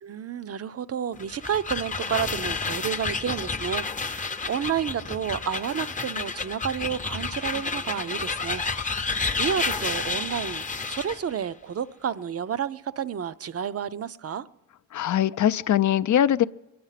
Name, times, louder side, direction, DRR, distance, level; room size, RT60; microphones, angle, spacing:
voice 1, 0.0-14.5, right 8 dB, 50° right, 0.6 m, -31 dB
sound 1, 1.1-11.2, left 4 dB, 25° left, 0.6 m, -30 dB
voice 2, 14.9-16.4, left 10 dB, 70° left, 0.5 m, -21 dB
22.5 x 9.5 x 5.8 m
cardioid pair, 85°, 31 cm